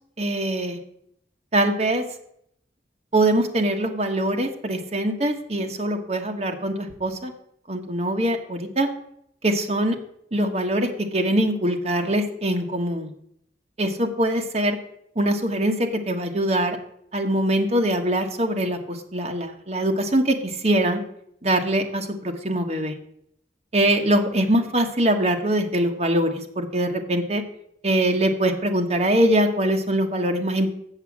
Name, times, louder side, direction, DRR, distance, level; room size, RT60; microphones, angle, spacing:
voice 1, 0.2-0.8 1.5-2.0 3.1-7.3 7.7-8.9 9.4-10.0 10.3-13.1 13.8-14.8 15.1-16.8 17.1-21.0 21.4-23.0 23.7-27.4 27.8-30.7, right 1 dB, 35° right, 3 dB, 1.2 m, -23 dB
8.0 x 7.5 x 7.2 m, 0.71 s
head